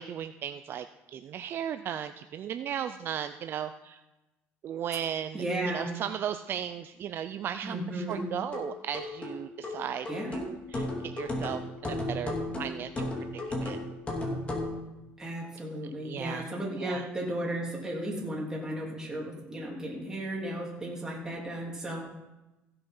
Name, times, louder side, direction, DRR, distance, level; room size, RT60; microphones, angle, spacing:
voice 1, 0.0-4.0 4.6-13.1 13.6-13.8 16.0-16.5 16.8-17.1, right 9 dB, 45° right, 10 dB, 0.4 m, -36 dB
voice 2, 5.3-5.9 7.6-8.3 10.1-10.4 15.2-22.0, right 1 dB, 10° right, -3 dB, 3.4 m, -34 dB
sound 1, 8.1-14.8, left 1 dB, 20° left, 2.5 m, -34 dB
15.5 x 6.8 x 5.5 m, 1.0 s
cardioid pair, 135°, 5 cm